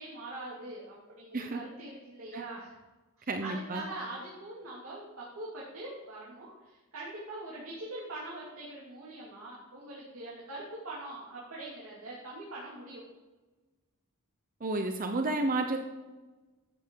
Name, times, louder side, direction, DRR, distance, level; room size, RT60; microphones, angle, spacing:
voice 1, 0.0-2.7 3.2-13.0, right 2 dB, 65° right, -6 dB, 2.9 m, -43 dB
voice 2, 3.3-3.8 14.6-15.8, right 2 dB, 40° right, 5 dB, 0.8 m, -31 dB
12.5 x 8.3 x 4.7 m, 1.2 s
head